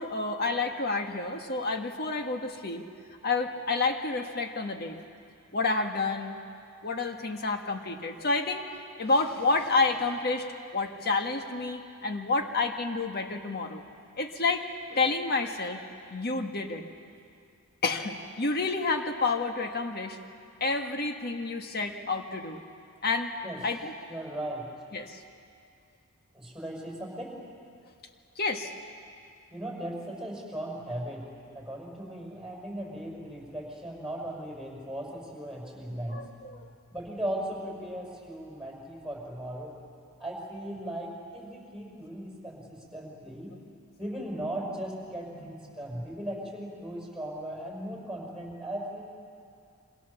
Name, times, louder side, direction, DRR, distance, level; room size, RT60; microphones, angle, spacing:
voice 1, 0.0-2.8 3.2-5.0 5.5-6.4 6.8-8.6 9.0-10.5 10.7-13.8 14.2-14.6 14.9-15.8 16.1-16.8 17.8-20.2 20.6-22.6 23.0-23.3 23.6-23.9 24.9-25.2 28.4-28.7 36.1-36.6 45.3-45.4, left 3 dB, 45° left, 5 dB, 1.7 m, -29 dB
voice 2, 24.1-24.6 26.3-27.3 29.5-31.2 31.5-36.2 36.9-39.8 40.2-43.6 44.0-49.0, right 1 dB, 5° right, -1 dB, 6.2 m, -37 dB
27.5 x 25.5 x 7.2 m, 2.4 s
head